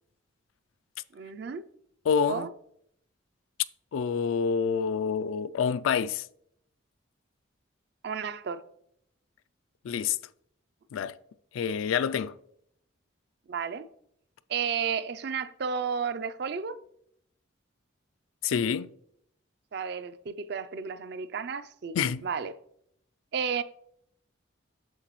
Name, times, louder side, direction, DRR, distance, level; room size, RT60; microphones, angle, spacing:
voice 1, 1.1-1.6 2.3-2.5 8.0-8.6 13.5-13.9 14.5-16.8 19.7-22.0 22.2-22.5 23.3-23.6, right 6 dB, 55° right, 0.4 m, -32 dB
voice 2, 2.1-2.5 3.9-6.3 9.8-10.2 10.9-11.2 11.5-12.3 18.4-18.9 21.9-22.2, left 6 dB, 80° left, 0.3 m, -27 dB
7.8 x 6.5 x 3.1 m
head